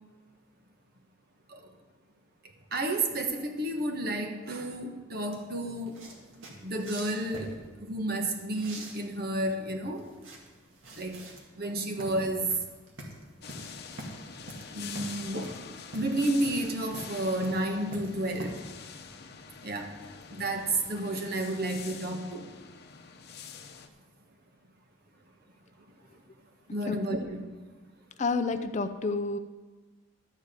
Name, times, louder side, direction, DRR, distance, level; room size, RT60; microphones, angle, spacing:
voice 1, 2.7-6.0 6.6-10.1 11.0-11.3 11.5-12.6 14.7-15.6 15.9-18.6 19.6-19.9 20.3-22.5 26.1-26.2 26.7-27.4, right 1 dB, 50° right, 4 dB, 1.3 m, -31 dB
sound 1, 5.3-18.5, right 1 dB, 80° right, 2.0 m, -45 dB
sound 2, 13.4-23.9, left 6 dB, 50° left, 0.8 m, -45 dB
voice 2, 26.9-27.2 28.2-29.4, left 3 dB, 35° left, 9 dB, 0.4 m, -29 dB
12.5 x 4.9 x 8.2 m, 1.3 s
head